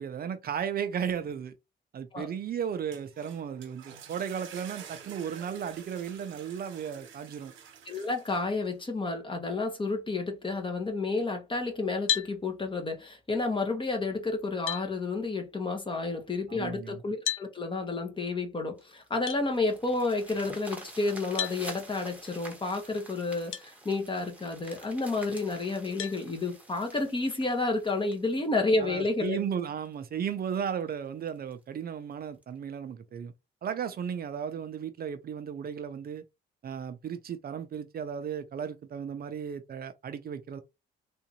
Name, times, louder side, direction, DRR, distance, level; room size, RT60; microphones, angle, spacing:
voice 1, 0.0-1.5 1.9-7.5 16.5-17.0 28.8-33.3 33.6-36.2 36.6-40.6, right 8 dB, 50° right, 0.6 m, -35 dB
sound 1, 2.7-8.7, right 7 dB, 80° right, 1.1 m, -49 dB
voice 2, 7.9-29.4, left 3 dB, 25° left, 1.2 m, -30 dB
sound 2, 12.1-12.3 14.0-14.1 14.7-14.9 17.2-17.5 19.3-19.4 21.4-21.6 23.5-23.7 24.3-24.4 26.0-26.2, left 10 dB, 90° left, 0.6 m, -31 dB
sound 3, 18.8-29.3 29.8-29.9 30.4-30.5 30.8-30.9 31.3-31.5 32.4-32.5, right 1 dB, 5° right, 1.2 m, -48 dB
3.7 x 2.6 x 2.9 m
cardioid pair, 90°, 20 cm